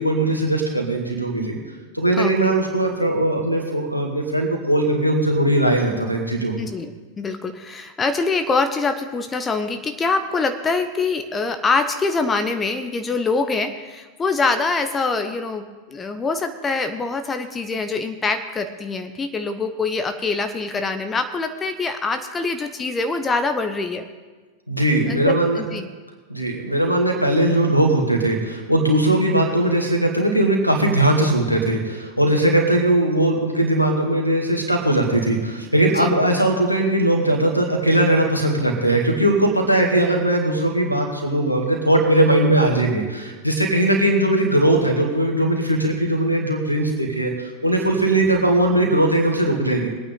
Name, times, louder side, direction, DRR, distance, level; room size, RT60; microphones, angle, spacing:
voice 1, 0.0-1.6 1.9-6.6 24.7-25.6 26.3-49.9, right 1 dB, 90° left, 2 dB, 2.2 m, -19 dB
voice 2, 2.2-2.5 6.6-24.1 25.1-25.9 36.0-36.1, left 4 dB, 20° left, 8 dB, 0.9 m, -24 dB
23.0 x 9.1 x 3.9 m, 1.3 s
figure-of-eight pair, 90°, 0 cm